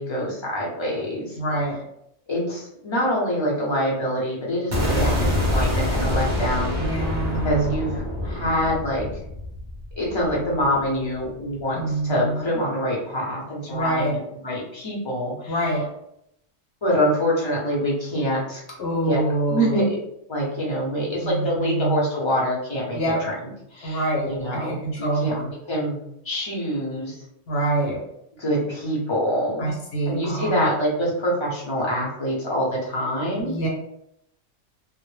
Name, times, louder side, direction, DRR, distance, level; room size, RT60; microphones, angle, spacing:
voice 1, 0.0-1.3 2.3-6.8 7.4-9.0 10.0-15.6 16.8-18.6 19.1-19.2 19.5-20.0 20.3-23.3 23.7-25.3 25.7-26.0 26.2-27.2 28.4-29.7 30.1-33.5, equal, 30° left, -5 dB, 0.6 m, -25 dB
voice 2, 1.4-1.8 4.9-5.2 6.8-7.7 11.7-12.4 13.7-14.2 15.5-15.8 18.8-19.8 21.2-22.0 22.9-23.2 23.8-25.5 27.5-28.0 29.6-30.7 33.4-33.7, right 2 dB, 60° left, -2 dB, 0.9 m, -26 dB
sound 1, 4.7-10.7, left 1 dB, 25° right, 0.4 m, -25 dB
2.1 x 2.1 x 3.1 m, 0.76 s
omnidirectional pair, 1.3 m